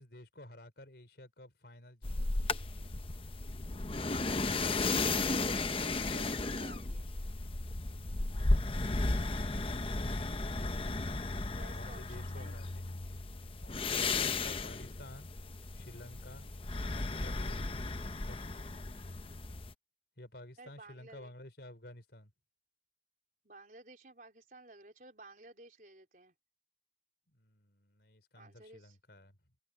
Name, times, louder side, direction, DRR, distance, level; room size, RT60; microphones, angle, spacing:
voice 1, 0.0-2.4 11.4-12.9 13.6-15.3 15.7-16.5 16.9-17.7 18.3-18.5 20.2-22.3 27.3-29.4, left 1 dB, 65° left, 4.1 m, -52 dB
sound 1, 2.0-19.7, left 3 dB, 30° left, 0.8 m, -35 dB
voice 2, 4.8-7.1 11.5-12.6 16.4-16.7 20.6-21.3 23.4-26.3 28.3-29.0, right 2 dB, 50° right, 4.2 m, -55 dB
head